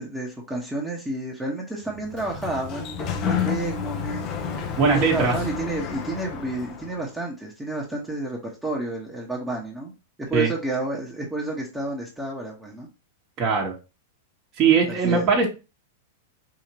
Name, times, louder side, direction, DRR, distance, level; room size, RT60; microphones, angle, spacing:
voice 1, 0.0-9.9 10.2-12.9 14.8-15.3, right 2 dB, 10° right, -2 dB, 1.2 m, -31 dB
Sliding door, 1.9-7.0, left 8 dB, 40° left, 0.7 m, -30 dB
voice 2, 4.8-5.3 10.3-10.5 13.4-13.7 14.6-15.5, right 5 dB, 40° right, -1 dB, 1.5 m, -20 dB
5.0 x 2.8 x 3.0 m, 0.28 s
hypercardioid pair, 110°, 0 cm